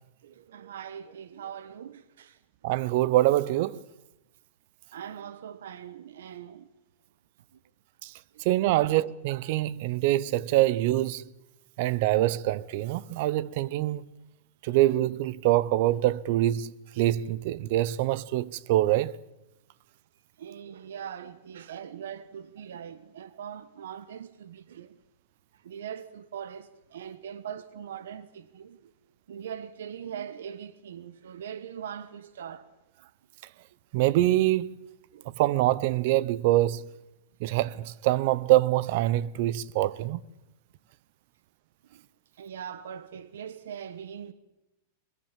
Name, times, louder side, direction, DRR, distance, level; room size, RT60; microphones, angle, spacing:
voice 1, 0.2-2.4 4.9-6.7 8.8-8.9 20.4-24.9 25.6-28.9 29.3-32.7 35.1-35.4 41.9-42.0 42.4-44.3, right 8 dB, 90° right, 1.1 m, -41 dB
voice 2, 2.6-3.8 8.0-8.1 8.4-11.2 11.8-14.0 14.6-19.1 33.9-34.7 35.4-36.9 37.4-40.2, right 15 dB, 55° right, 0.8 m, -25 dB
22.5 x 21.5 x 7.4 m
supercardioid pair, 150°, 0 cm